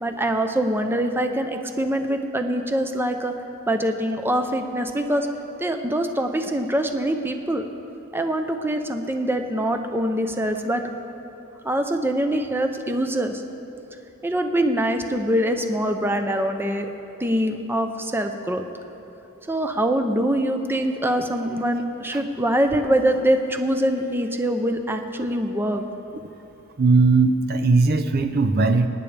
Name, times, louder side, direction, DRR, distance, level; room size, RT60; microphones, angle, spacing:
voice 1, 0.0-3.3 3.7-5.3 5.6-7.7 8.1-10.8 11.6-13.4 14.2-16.9 17.2-18.7 19.5-25.8, right 1 dB, 10° right, 6 dB, 0.7 m, -24 dB
voice 2, 26.8-28.9, right 3 dB, 50° right, 8 dB, 0.6 m, -18 dB
25.0 x 10.0 x 3.4 m, 3.0 s
head